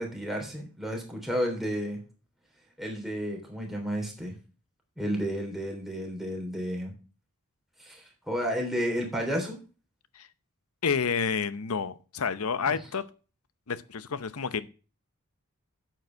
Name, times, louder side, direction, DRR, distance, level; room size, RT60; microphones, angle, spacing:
voice 1, 0.0-2.0 2.8-4.3 5.0-6.9 7.8-9.6 12.7-12.8, equal, ahead, 0 dB, 3.3 m, -32 dB
voice 2, 10.8-13.0 13.7-14.7, left 6 dB, 80° left, 15 dB, 0.7 m, -29 dB
9.2 x 7.9 x 4.6 m, 0.35 s
head